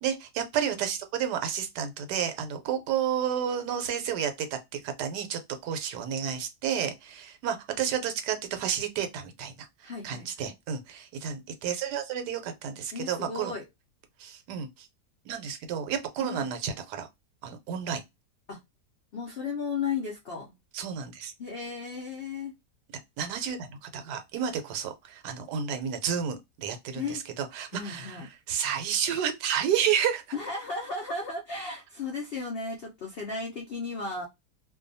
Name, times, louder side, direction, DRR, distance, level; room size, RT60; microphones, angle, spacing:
voice 1, 0.0-9.5 9.8-13.5 14.2-14.9 15.3-17.1 17.4-18.0 20.7-21.3 23.2-28.2 28.5-30.2, right 8 dB, 80° right, 1.2 m, -31 dB
voice 2, 9.8-10.5 12.9-13.6 16.2-16.5 18.5-18.6 19.1-20.5 21.4-22.5 26.9-27.2 27.7-28.3 30.3-34.3, left 4 dB, 75° left, 0.5 m, -35 dB
2.6 x 2.2 x 2.5 m
omnidirectional pair, 1.8 m